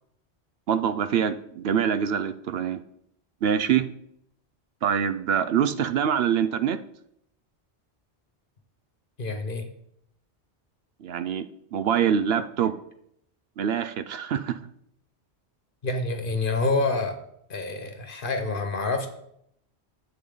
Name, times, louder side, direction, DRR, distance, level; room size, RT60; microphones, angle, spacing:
voice 1, 0.7-2.8 3.4-3.9 4.8-6.8 11.0-12.8 13.6-14.6, right 8 dB, 70° right, 12 dB, 0.8 m, -25 dB
voice 2, 9.2-9.7 15.8-17.2 17.5-19.1, left 3 dB, 50° left, 7 dB, 1.3 m, -27 dB
10.5 x 8.0 x 3.9 m, 0.73 s
omnidirectional pair, 1.1 m